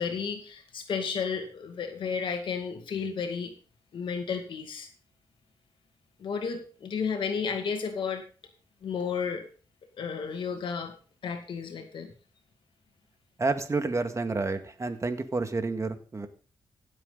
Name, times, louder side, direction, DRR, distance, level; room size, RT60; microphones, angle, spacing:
voice 1, 0.0-3.5 3.9-4.9 6.2-8.2 8.8-9.5 10.0-10.9 11.2-12.1, left 6 dB, 70° left, 5 dB, 2.1 m, -32 dB
voice 2, 13.4-16.3, right 3 dB, 35° right, 8 dB, 2.0 m, -29 dB
16.0 x 7.7 x 4.0 m, 0.38 s
supercardioid pair, 50°, 9 cm